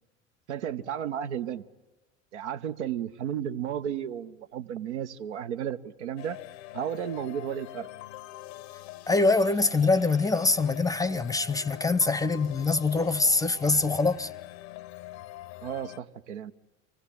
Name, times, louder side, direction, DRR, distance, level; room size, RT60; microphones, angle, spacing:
voice 1, 0.5-1.6 2.3-6.4 6.7-7.9 15.6-16.5, right 9 dB, 70° right, 0.8 m, -33 dB
sound 1, 6.2-16.0, left 15 dB, 60° left, 0.7 m, -44 dB
voice 2, 9.1-14.3, left 3 dB, 10° left, 0.7 m, -24 dB
25.5 x 16.5 x 9.9 m
figure-of-eight pair, 70°, 36 cm